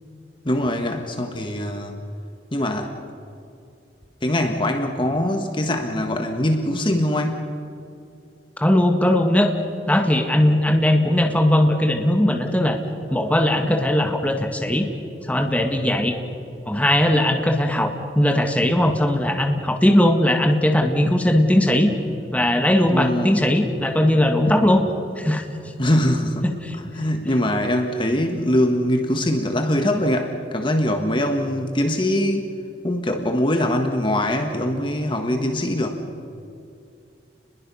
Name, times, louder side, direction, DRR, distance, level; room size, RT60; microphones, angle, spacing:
voice 1, 0.4-2.0 2.5-2.9 4.2-7.4 22.9-23.5 25.8-26.5 26.8-32.5 32.8-36.0, left 1 dB, 30° left, 5 dB, 1.5 m, -22 dB
voice 2, 8.6-9.5 9.9-12.8 13.1-14.9 15.3-16.1 16.7-21.9 22.3-24.8 25.2-25.5 26.4-26.7, left 1 dB, 10° left, 4 dB, 1.7 m, -19 dB
30.0 x 21.0 x 5.6 m, 2.5 s
head